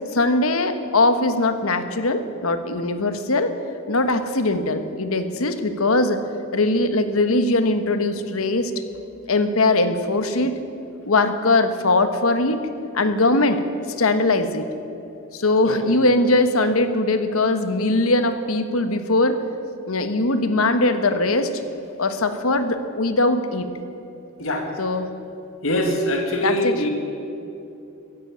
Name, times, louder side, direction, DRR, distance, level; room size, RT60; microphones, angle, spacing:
voice 1, 0.1-3.5 3.9-6.2 6.5-8.8 9.3-10.6 11.1-12.6 12.9-13.6 14.0-14.7 15.3-19.4 19.9-21.5 22.0-23.7 24.8-25.1 26.4-26.7, left 2 dB, 85° left, 9 dB, 1.2 m, -20 dB
voice 2, 25.6-26.9, left 1 dB, 70° left, 2 dB, 2.2 m, -23 dB
15.0 x 10.5 x 8.8 m, 2.7 s
head